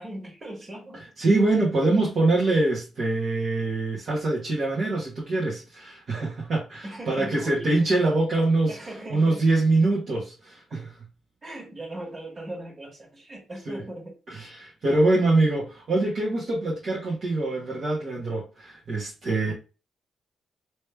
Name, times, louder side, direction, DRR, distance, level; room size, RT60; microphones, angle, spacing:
voice 1, 0.0-1.0 6.8-7.7 8.7-9.5 11.4-14.2 19.4-19.5, right 1 dB, 40° right, 1.9 m, -39 dB
voice 2, 1.2-8.8 9.1-10.9 13.7-13.8 14.3-19.5, right 2 dB, 60° right, 1.4 m, -24 dB
3.2 x 3.1 x 3.3 m
cardioid pair, 75°, 0 cm